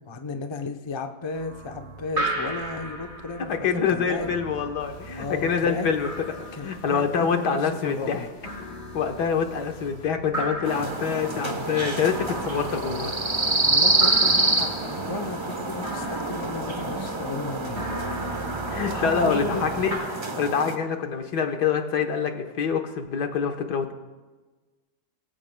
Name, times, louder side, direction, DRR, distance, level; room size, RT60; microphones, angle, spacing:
voice 1, 0.0-4.3 5.2-5.9 6.5-8.3 13.6-17.8 18.9-19.8, left 3 dB, 30° left, 5 dB, 0.5 m, -34 dB
sound 1, 1.3-20.0, right 1 dB, 55° right, 3.8 m, -37 dB
voice 2, 3.5-6.1 6.4-8.3 8.9-13.1 18.7-20.0 20.4-23.9, left 6 dB, 80° left, 5 dB, 1.7 m, -26 dB
sound 2, 4.6-17.4, left 5 dB, 65° left, 1.8 m, -47 dB
sound 3, 10.6-20.7, right 2 dB, 30° right, 0.6 m, -27 dB
22.0 x 15.0 x 2.2 m, 1.3 s
omnidirectional pair, 1.8 m